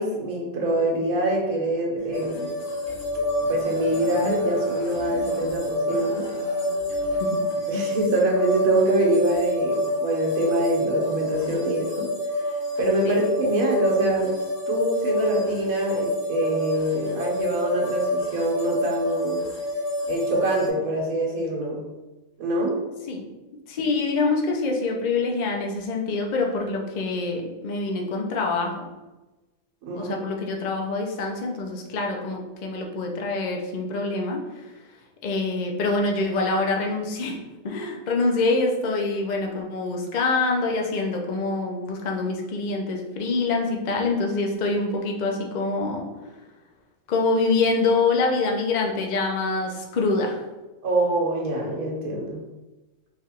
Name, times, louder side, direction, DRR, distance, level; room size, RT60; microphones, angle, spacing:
voice 1, 0.0-2.6 3.5-6.3 7.7-12.1 12.8-14.4 14.7-19.4 20.1-21.8 22.4-22.8 29.8-30.2 50.8-52.4, right 2 dB, 80° right, -1 dB, 1.3 m, -25 dB
sound 1, 2.0-7.2, right 1 dB, 30° right, 1.3 m, -41 dB
sound 2, 2.1-20.7, left 1 dB, 45° left, 1.0 m, -27 dB
voice 2, 23.7-28.9 29.9-34.4 35.2-37.4 37.6-46.1 47.1-50.4, left 3 dB, 65° left, 1 dB, 0.4 m, -25 dB
3.3 x 2.4 x 4.2 m, 1.1 s
omnidirectional pair, 1.5 m